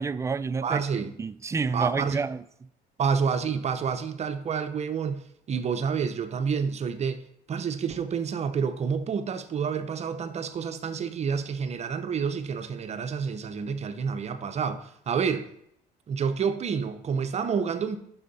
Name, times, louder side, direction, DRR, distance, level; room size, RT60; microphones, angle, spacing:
voice 1, 0.0-0.8 1.2-2.4, right 4 dB, 15° right, 0.3 m, -29 dB
voice 2, 0.6-1.2 1.7-2.2 3.0-7.2 7.5-15.5 16.1-18.0, right 6 dB, 40° right, 0.7 m, -29 dB
9.0 x 6.3 x 4.1 m
cardioid pair, 110°, 17 cm